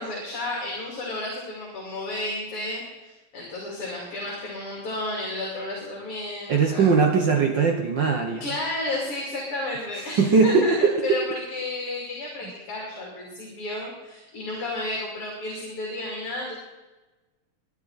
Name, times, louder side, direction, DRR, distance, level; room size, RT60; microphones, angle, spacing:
voice 1, 0.0-6.9 8.4-16.5, left 2 dB, 50° left, -2 dB, 3.6 m, -32 dB
voice 2, 6.5-8.4 10.2-10.9, right 5 dB, 70° right, 3 dB, 1.0 m, -20 dB
20.5 x 10.5 x 4.1 m, 1.2 s
omnidirectional pair, 3.5 m